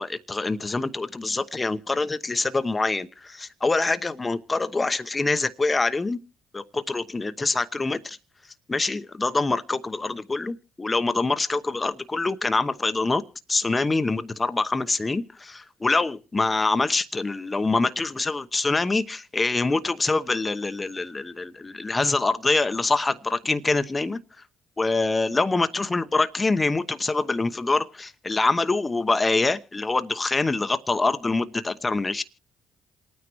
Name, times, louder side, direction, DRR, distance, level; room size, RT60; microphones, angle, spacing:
voice 1, 0.0-6.2 6.5-8.2 8.7-13.2 13.5-24.2 24.8-32.2, left 3 dB, 25° left, 0.9 m, -25 dB
28.0 x 9.6 x 3.1 m
hypercardioid pair, 55°, 0 cm